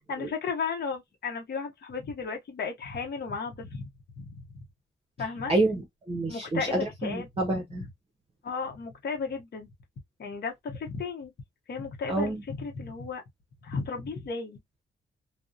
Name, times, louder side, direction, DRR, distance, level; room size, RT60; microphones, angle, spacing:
voice 1, 0.1-3.8 4.2-4.6 5.2-5.5 6.3-7.3 8.4-9.7 10.2-11.3 11.7-13.2 13.6-14.6, left 5 dB, 60° left, 0.8 m, -34 dB
voice 2, 5.5-7.9 12.1-12.4, right 2 dB, 30° right, 0.6 m, -28 dB
2.6 x 2.0 x 2.3 m
wide cardioid pair, 150°, 19 cm